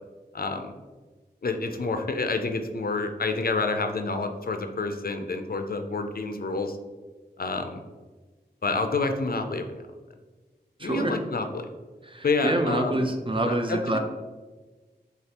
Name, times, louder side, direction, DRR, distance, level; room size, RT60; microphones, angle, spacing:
voice 1, 0.3-0.7 1.4-6.8 7.4-7.8 8.6-9.7 10.8-11.7 12.2-13.1 13.5-14.0, left 3 dB, 60° left, 6 dB, 0.4 m, -28 dB
voice 2, 10.8-11.1 12.0-14.0, right 1 dB, 30° right, 4 dB, 0.5 m, -26 dB
6.5 x 2.4 x 2.9 m, 1.3 s
wide cardioid pair, 50°, 17 cm